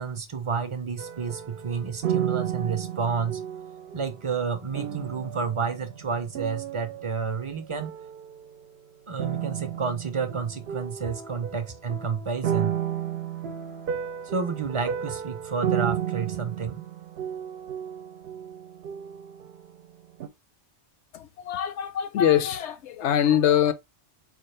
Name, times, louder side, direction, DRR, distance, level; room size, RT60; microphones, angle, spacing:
voice 1, 0.0-3.4 3.9-7.9 9.1-12.7 14.2-16.8, right 5 dB, 35° right, 0.5 m, -30 dB
sound 1, 1.0-7.5 7.8-8.6 9.2-19.9 20.2-20.3, right 9 dB, 65° right, 0.8 m, -33 dB
voice 2, 21.1-23.7, left 10 dB, 80° left, 0.9 m, -23 dB
4.6 x 2.4 x 3.1 m
omnidirectional pair, 1.2 m